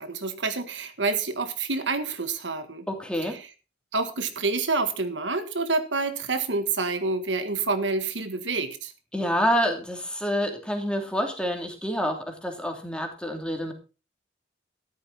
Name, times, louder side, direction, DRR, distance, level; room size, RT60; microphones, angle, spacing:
voice 1, 0.0-2.9 3.3-3.4 3.9-8.9, right 3 dB, 80° right, 8 dB, 1.7 m, -28 dB
voice 2, 2.9-3.4 9.1-13.7, equal, 5° left, 3 dB, 3.0 m, -27 dB
13.5 x 12.0 x 4.1 m, 0.33 s
head